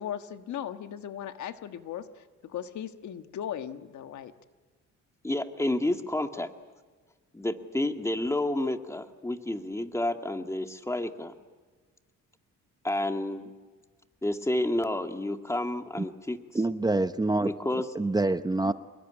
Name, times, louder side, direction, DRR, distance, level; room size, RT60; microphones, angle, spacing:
voice 1, 0.0-4.3 18.6-18.7, left 10 dB, 70° left, 8 dB, 1.5 m, -38 dB
voice 2, 5.2-6.5 7.3-11.3 12.8-13.5 14.2-16.4 17.4-17.9, left 1 dB, 10° left, 6 dB, 2.0 m, -30 dB
voice 3, 16.5-17.5 17.9-18.7, right 2 dB, 15° right, 10 dB, 0.8 m, -26 dB
26.5 x 21.5 x 9.9 m, 1.4 s
cardioid pair, 90°, 30 cm